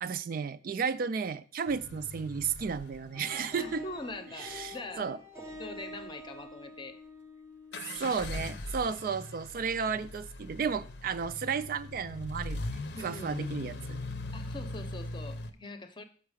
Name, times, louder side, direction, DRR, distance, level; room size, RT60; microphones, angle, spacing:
voice 1, 0.0-3.8 4.4-5.2 7.8-12.6 13.0-14.0, right 6 dB, 45° right, 12 dB, 0.3 m, -33 dB
sound 1, 1.7-4.0 7.7-15.5, left 2 dB, 60° left, 0.6 m, -40 dB
sound 2, 3.1-8.6, left 2 dB, 15° right, 0.7 m, -47 dB
voice 2, 3.6-5.1 5.6-7.0 7.8-8.3 12.9-13.5 14.3-16.0, left 2 dB, 25° left, 9 dB, 0.7 m, -43 dB
7.1 x 5.7 x 4.8 m, 0.43 s
head